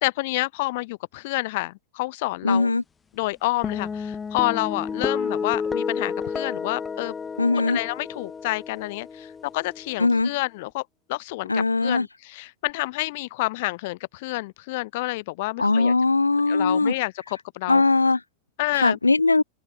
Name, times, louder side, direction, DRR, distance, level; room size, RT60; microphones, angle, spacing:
voice 1, 0.0-2.7 3.1-7.1 7.5-15.9 16.5-17.8 18.6-19.0, left 21 dB, 50° left, 2.4 m, -29 dB
voice 2, 2.4-2.8 7.4-7.8 10.0-10.3 11.5-12.1 15.6-16.9 17.7-18.2 18.7-19.4, left 3 dB, 80° left, 2.2 m, -20 dB
sound 1, 3.6-10.2, left 5 dB, 15° left, 2.9 m, -31 dB
open air
figure-of-eight pair, 90°, 0 cm